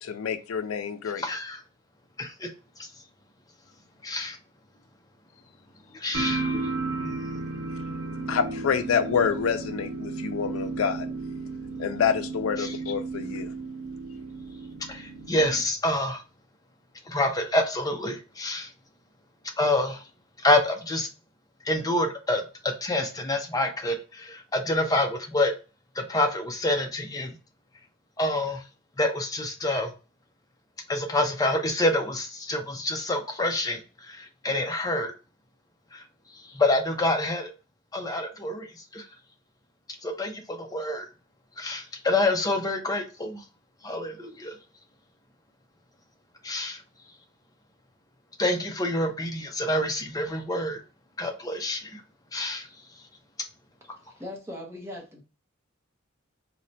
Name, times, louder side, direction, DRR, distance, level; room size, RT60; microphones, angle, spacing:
voice 1, 0.0-1.2 8.3-11.1 11.8-13.5, left 7 dB, 90° left, 0.4 m, -27 dB
voice 2, 1.2-1.6 2.2-2.5 2.8-2.9 4.0-4.4 5.9-6.7 7.0-7.1 12.6-12.7 14.9-16.2 17.1-18.7 19.6-20.0 20.4-21.1 21.6-25.5 26.0-27.4 28.2-28.6 29.0-29.9 30.9-35.1 35.9-36.0 36.3-37.5 37.9-39.1 40.0-41.1 41.6-43.4 43.8-44.6 46.4-46.8 48.4-50.8 51.2-52.0 52.3-52.7, left 1 dB, 20° left, 0.4 m, -27 dB
sound 1, 6.1-15.6, right 3 dB, 70° right, 1.0 m, -33 dB
voice 3, 54.1-55.2, left 1 dB, 15° right, 0.8 m, -39 dB
4.1 x 2.1 x 2.6 m
head